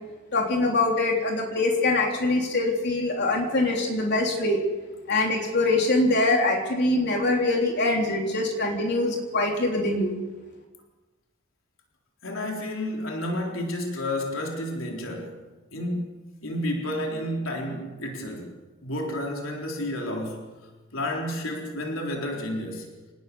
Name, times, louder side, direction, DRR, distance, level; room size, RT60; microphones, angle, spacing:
voice 1, 0.3-4.6 5.1-10.2, left 2 dB, 55° left, 1 dB, 3.7 m, -23 dB
voice 2, 12.2-18.5 18.8-20.6 20.9-22.9, left 1 dB, 75° left, 0 dB, 4.0 m, -31 dB
26.5 x 19.5 x 7.0 m, 1.2 s
head